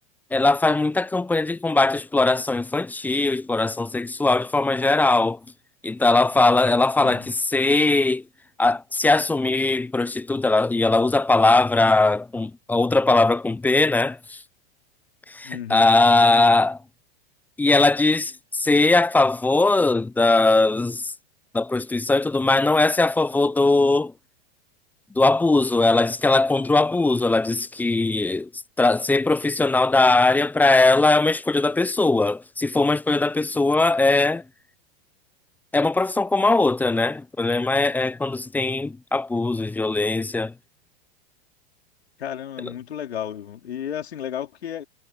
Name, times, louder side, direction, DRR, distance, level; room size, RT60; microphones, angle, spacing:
voice 1, 0.3-5.4 5.8-8.2 8.6-14.4 15.3-16.8 17.6-21.1 21.5-24.1 25.2-28.5 28.8-34.4 35.7-40.5, left 2 dB, 5° left, 0.4 m, -20 dB
voice 2, 15.4-15.9 42.2-44.8, left 9 dB, 85° left, 4.1 m, -33 dB
hypercardioid pair, 105°, 31 cm